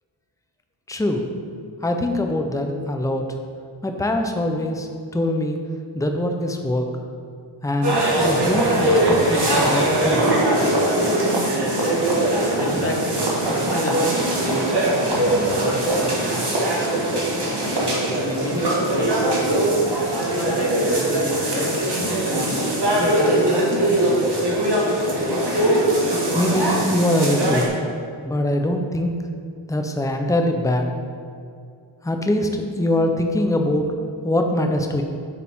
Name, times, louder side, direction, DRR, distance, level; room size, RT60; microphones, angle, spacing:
voice 1, 0.9-1.3 1.8-3.2 3.8-5.6 5.9-6.9 7.6-10.3 26.3-27.8 28.2-29.2 29.7-30.9 32.0-33.9 34.2-35.0, left 1 dB, 5° left, 4 dB, 0.6 m, -23 dB
sound 1, 7.8-27.7, right 1 dB, 55° right, 1.7 m, -21 dB
voice 2, 12.6-16.4 17.4-19.7 20.3-22.9, left 1 dB, 30° left, 0 dB, 1.3 m, -31 dB
8.3 x 7.2 x 3.6 m, 2.3 s
wide cardioid pair, 100°, 49 cm